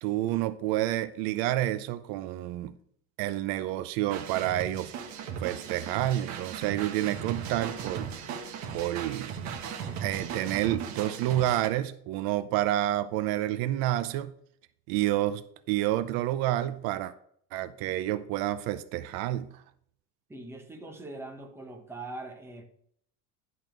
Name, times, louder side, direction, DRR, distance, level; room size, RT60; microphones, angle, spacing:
voice 1, 0.0-2.8 3.2-5.0 5.4-8.3 8.7-9.3 10.0-14.3 14.9-17.1 17.5-19.6, right 14 dB, 75° right, 0.7 m, -29 dB
sound 1, 4.1-11.7, right 7 dB, 50° right, 1.4 m, -37 dB
voice 2, 20.3-22.6, right 2 dB, 5° right, 1.1 m, -42 dB
11.0 x 4.1 x 5.0 m
cardioid pair, 155°, 36 cm